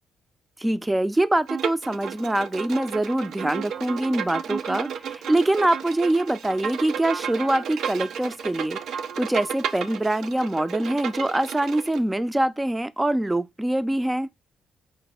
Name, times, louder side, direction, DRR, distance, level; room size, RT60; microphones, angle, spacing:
voice 1, 0.6-8.8 9.2-14.3, right 1 dB, 10° right, 0.4 m, -24 dB
Bowed string instrument, 1.5-12.0, right 7 dB, 70° right, 0.4 m, -33 dB
5.1 x 2.1 x 3.9 m
cardioid pair, 90°, 0 cm